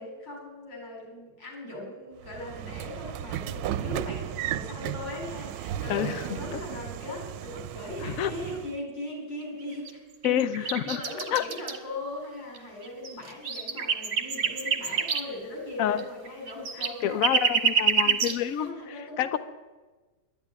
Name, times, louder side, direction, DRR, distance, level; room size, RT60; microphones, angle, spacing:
voice 1, 0.0-10.0 10.6-17.6 18.2-19.4, left 1 dB, 80° left, -1 dB, 5.0 m, -39 dB
Train / Sliding door, 2.2-8.8, right 11 dB, 80° right, 1.2 m, -35 dB
voice 2, 5.9-6.3 6.5-6.6 8.0-8.3 10.2-11.0 11.3-11.4 15.8-16.0 17.0-19.4, left 10 dB, 60° left, 14 dB, 1.0 m, -28 dB
sound 1, 9.6-9.9 10.2-11.8 12.5-12.6 12.8-15.2 16.0-16.1 16.3-18.4, right 6 dB, 45° right, 1.4 m, -27 dB
11.5 x 9.7 x 9.7 m, 1.3 s
omnidirectional pair, 2.0 m